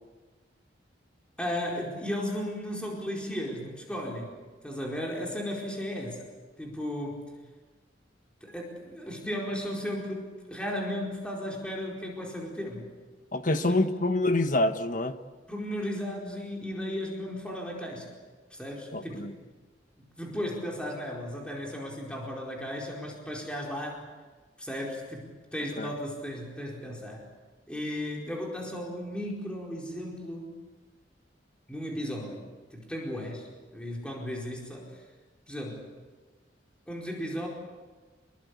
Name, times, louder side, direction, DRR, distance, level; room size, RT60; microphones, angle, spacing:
voice 1, 1.4-4.4 4.6-6.3 6.6-7.3 8.4-12.9 13.6-13.8 15.5-18.1 18.5-19.4 20.2-24.0 24.6-27.3 27.7-30.6 31.7-35.0 35.5-35.8 36.9-37.5, equal, 5° left, -2 dB, 4.6 m, -35 dB
voice 2, 13.3-15.2 18.9-19.3 25.8-25.9, left 2 dB, 45° left, 9 dB, 1.3 m, -26 dB
26.5 x 21.5 x 8.5 m, 1.3 s
head